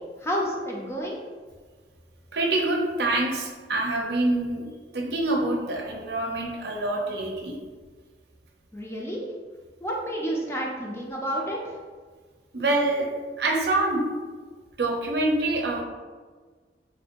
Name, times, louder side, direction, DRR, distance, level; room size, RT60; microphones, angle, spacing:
voice 1, 0.2-1.1 8.7-9.2 9.8-11.8, equal, 15° left, -2 dB, 0.5 m, -30 dB
voice 2, 2.3-4.6 4.9-7.5 12.5-13.1 13.4-14.0 14.8-15.8, right 2 dB, 65° right, 0 dB, 0.6 m, -25 dB
4.4 x 2.5 x 2.9 m, 1.5 s
head